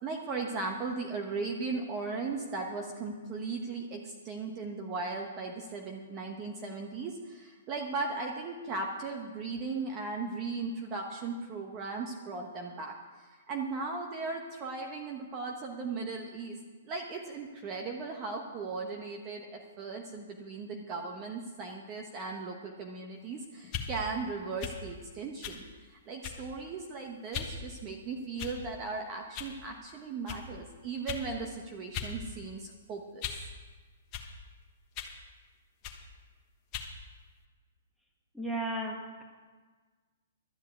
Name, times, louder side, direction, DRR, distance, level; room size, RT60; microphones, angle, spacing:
voice 1, 0.0-16.6 16.8-33.4, right 4 dB, 25° right, 2 dB, 1.2 m, -37 dB
sound 1, 23.6-23.9 24.6-24.8 25.4-25.6 26.2-26.5 27.3-27.5 28.4-28.8 29.3-29.5 30.3-30.4 31.1-31.3 31.9-32.1 32.5-33.5 34.1-34.3 34.9-35.2 35.8-36.0 36.7-36.9, left 8 dB, 30° left, 1.3 m, -38 dB
voice 2, 38.3-39.2, right 1 dB, ahead, 0 dB, 1.6 m, -34 dB
12.5 x 7.4 x 8.3 m, 1.4 s
hypercardioid pair, 150°, 0 cm